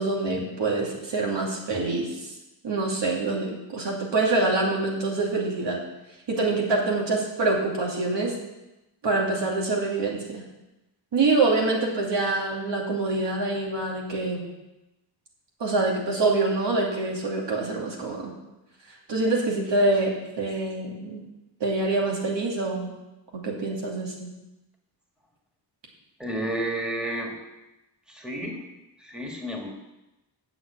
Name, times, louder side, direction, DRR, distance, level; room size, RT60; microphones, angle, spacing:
voice 1, 0.0-2.3 2.6-5.8 6.3-8.3 9.0-10.4 11.1-14.4 15.6-18.3 19.1-21.2 21.6-22.9 23.3-24.3, right 3 dB, 70° right, -1 dB, 2.7 m, -25 dB
voice 2, 26.2-27.5 28.1-28.6 29.0-29.7, right 1 dB, ahead, 0 dB, 1.8 m, -31 dB
7.7 x 7.1 x 8.4 m, 0.98 s
wide cardioid pair, 110°, 44 cm